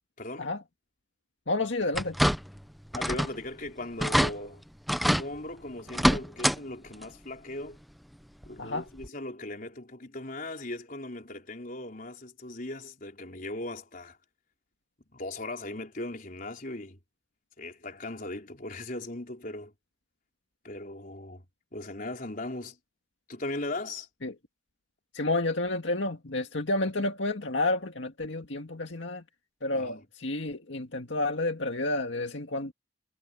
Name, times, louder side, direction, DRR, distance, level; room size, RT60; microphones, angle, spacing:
voice 1, 0.2-0.5 2.9-4.6 5.0-7.8 8.5-14.2 15.1-17.0 17.6-19.7 20.6-21.4 21.7-22.8 23.3-24.1 29.7-30.0, left 2 dB, 45° left, 4.3 m, -38 dB
voice 2, 1.5-2.2 8.6-8.9 24.2-24.3 25.1-29.2 29.6-32.7, left 2 dB, 75° left, 2.0 m, -30 dB
sound 1, 1.9-2.6 2.9-3.4 3.7-3.8 4.0-4.3 4.9-5.3 5.9-6.6 6.9-7.0 8.4-8.5 9.0-9.1, equal, ahead, 0.6 m, -25 dB
head